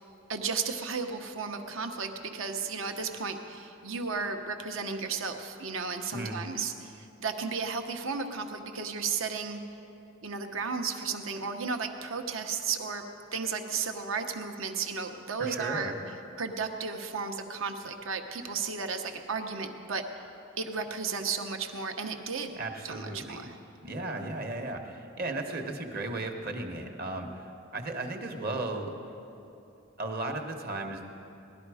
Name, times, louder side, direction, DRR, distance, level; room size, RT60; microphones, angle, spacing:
voice 1, 0.3-9.6 10.2-13.0 13.3-15.9 16.4-20.0 20.6-22.5 22.8-23.5 24.2-24.3, right 5 dB, 75° right, 5 dB, 1.0 m, -34 dB
voice 2, 15.4-16.0 22.6-23.5 23.8-27.5 27.7-28.9 30.0-31.0, right 2 dB, 45° right, 4 dB, 1.1 m, -35 dB
18.5 x 12.0 x 4.9 m, 2.9 s
head